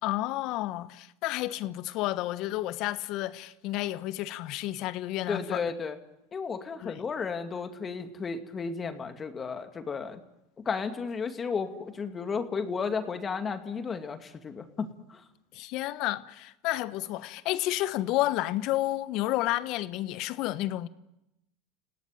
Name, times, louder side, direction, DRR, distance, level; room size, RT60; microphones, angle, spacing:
voice 1, 0.0-5.6 6.8-7.0 15.5-20.9, left 16 dB, 55° left, 1.2 m, -31 dB
voice 2, 5.3-6.0 6.3-10.2 10.7-15.2, left 5 dB, 25° left, 2.4 m, -33 dB
30.0 x 17.5 x 9.2 m
hypercardioid pair, 95°, 0 cm